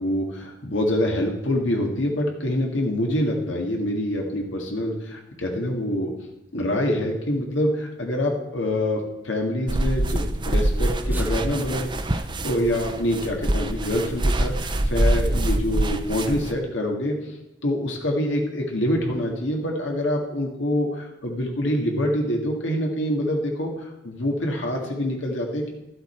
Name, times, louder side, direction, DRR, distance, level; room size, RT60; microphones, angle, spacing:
voice 1, 0.0-6.1 6.5-17.3 17.6-25.7, left 1 dB, 85° left, 1 dB, 1.9 m, -26 dB
sound 1, 9.7-16.5, right 1 dB, 25° right, 0.6 m, -25 dB
sound 2, 10.6-15.8, equal, 10° right, 1.1 m, -37 dB
12.5 x 7.8 x 4.5 m, 0.95 s
head